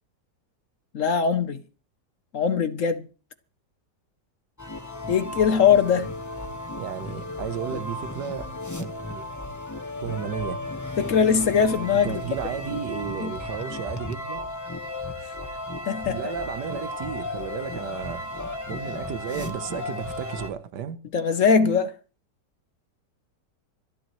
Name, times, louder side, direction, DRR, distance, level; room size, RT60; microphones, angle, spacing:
voice 1, 0.9-1.6 2.3-3.1 5.1-6.1 11.0-12.2 13.2-13.3 15.9-16.2 21.1-21.9, left 6 dB, 55° left, 1.0 m, -21 dB
sound 1, 4.6-20.5, left 2 dB, 15° left, 0.9 m, -34 dB
voice 2, 6.7-8.5 8.8-9.3 10.0-10.6 11.9-14.4 16.1-18.2 18.7-21.0, right 9 dB, 80° right, 1.5 m, -33 dB
26.0 x 11.0 x 3.1 m
omnidirectional pair, 1.8 m